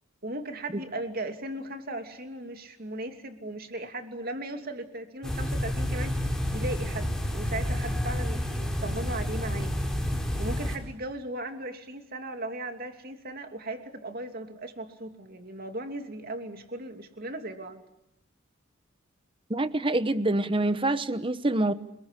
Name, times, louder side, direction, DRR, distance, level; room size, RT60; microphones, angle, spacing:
voice 1, 0.2-6.2 6.5-9.7 10.4-17.8, right 2 dB, 45° right, 2.8 m, -37 dB
sound 1, 5.2-10.8, left 1 dB, 5° left, 4.4 m, -29 dB
voice 2, 19.5-21.7, right 2 dB, 25° right, 1.1 m, -26 dB
29.0 x 21.5 x 8.4 m
head